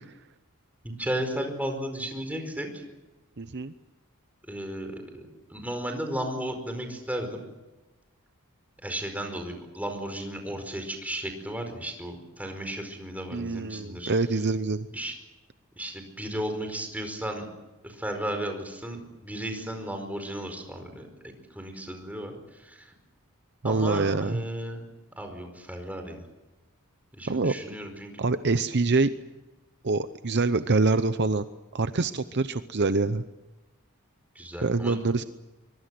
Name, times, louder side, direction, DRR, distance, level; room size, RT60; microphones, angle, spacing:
voice 1, 0.8-2.8 4.5-7.4 8.8-14.1 14.9-15.2 15.8-17.5 17.8-22.9 23.6-24.8 25.2-26.2 27.2-28.1 34.3-35.0, right 1 dB, 5° right, 5 dB, 4.9 m, -34 dB
voice 2, 3.4-3.7 13.3-14.9 23.6-24.4 27.3-27.8 28.2-29.1 29.8-31.4 31.7-33.2 34.6-35.2, right 3 dB, 50° right, 11 dB, 0.8 m, -25 dB
24.5 x 22.5 x 7.7 m, 1.1 s
head